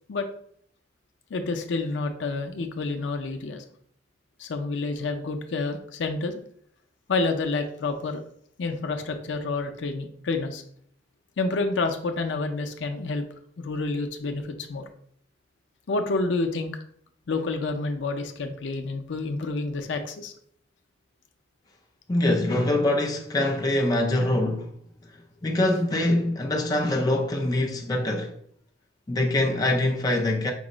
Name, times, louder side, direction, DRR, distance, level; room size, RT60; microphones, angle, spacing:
voice 1, 1.3-3.6 4.4-6.4 7.1-8.2 8.6-10.6 11.4-13.2 13.6-14.8 15.9-16.7 17.3-20.3, left 3 dB, 80° left, 0.5 m, -29 dB
voice 2, 22.1-24.7 25.4-28.4 29.1-30.5, left 1 dB, 20° left, 0.4 m, -24 dB
5.2 x 2.0 x 4.8 m
head